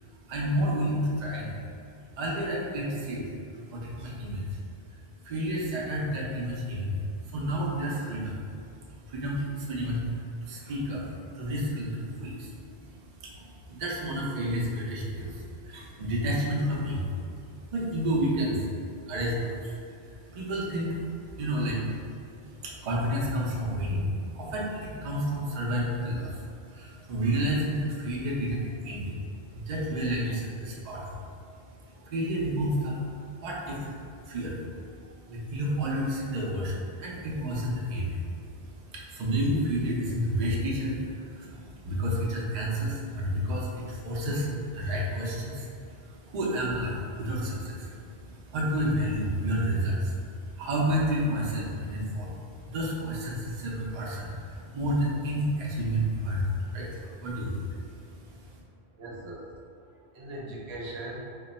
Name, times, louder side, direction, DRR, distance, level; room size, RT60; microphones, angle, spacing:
voice 1, 0.0-1.6 2.2-34.6 34.9-58.6, equal, 50° right, -4 dB, 0.6 m, -31 dB
voice 2, 59.0-59.6 60.0-61.3, right 1 dB, 80° right, -3 dB, 0.9 m, -41 dB
3.0 x 2.2 x 4.0 m, 2.4 s
omnidirectional pair, 1.1 m